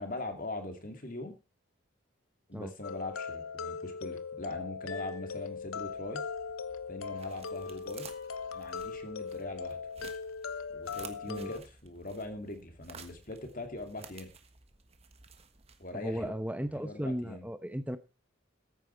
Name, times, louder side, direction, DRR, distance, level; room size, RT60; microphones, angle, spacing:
voice 1, 0.0-1.3 2.5-6.2 6.9-8.1 8.5-9.8 10.7-14.3 15.8-16.3 16.7-17.5, left 2 dB, 40° left, 6 dB, 2.6 m, -41 dB
sound 1, 2.8-11.6, left 5 dB, 90° left, 0.9 m, -39 dB
sound 2, 5.2-16.2, right 5 dB, 30° right, 1.3 m, -54 dB
voice 2, 15.9-18.0, equal, 5° right, 11 dB, 1.0 m, -35 dB
15.0 x 9.3 x 4.5 m, 0.31 s
head